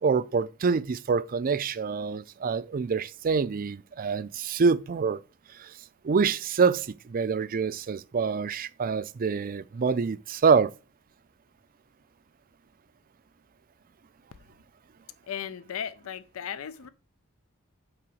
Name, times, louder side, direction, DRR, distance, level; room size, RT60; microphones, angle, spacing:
voice 1, 0.0-5.2 5.5-5.7 6.0-10.7, right 5 dB, 40° right, 0.4 m, -26 dB
voice 2, 15.3-16.9, left 8 dB, 70° left, 0.5 m, -36 dB
5.9 x 4.8 x 6.2 m
head